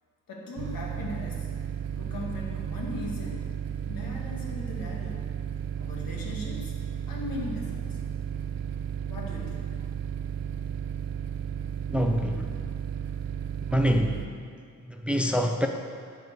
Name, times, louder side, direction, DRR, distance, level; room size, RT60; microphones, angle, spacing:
voice 1, 0.3-1.5 2.0-3.4 3.9-5.2 5.8-6.7 7.1-8.0 9.1-9.7, left 2 dB, 80° left, -2 dB, 2.1 m, -38 dB
sound 1, 0.6-14.3, right 9 dB, 85° right, 0.5 m, -34 dB
voice 2, 11.9-12.4 13.7-14.1 15.0-15.7, equal, 5° right, 4 dB, 0.5 m, -24 dB
11.0 x 4.9 x 8.3 m, 2.2 s
wide cardioid pair, 140°, 33 cm